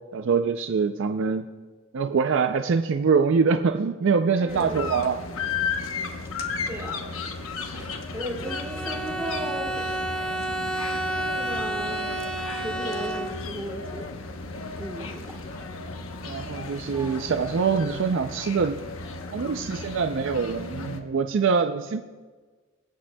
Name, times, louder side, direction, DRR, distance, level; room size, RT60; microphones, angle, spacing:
voice 1, 0.1-1.5 1.9-5.2 16.2-18.8 19.3-22.1, right 5 dB, 65° right, 8 dB, 0.4 m, -24 dB
voice 2, 4.4-5.1 6.7-10.1 11.3-12.1 12.5-14.1 14.8-15.4 16.9-17.3, equal, 15° right, 0 dB, 1.3 m, -37 dB
sound 1, 4.5-21.0, left 4 dB, 85° left, 0.9 m, -35 dB
Bowed string instrument, 8.4-13.7, right 1 dB, 5° left, 1.4 m, -31 dB
23.5 x 8.6 x 2.2 m, 1.4 s
head